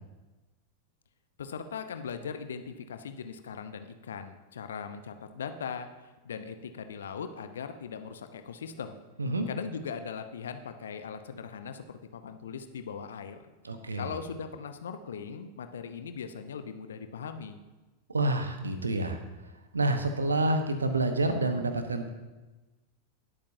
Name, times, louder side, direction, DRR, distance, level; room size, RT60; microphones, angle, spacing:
voice 1, 1.4-5.9 6.2-9.0 9.5-13.4 14.0-17.6, left 6 dB, 65° left, 8 dB, 0.8 m, -39 dB
voice 2, 13.6-14.1 18.1-19.2 19.7-22.1, right 2 dB, 75° right, 7 dB, 1.1 m, -28 dB
18.5 x 8.6 x 2.8 m, 1.2 s
figure-of-eight pair, 90°, 0 cm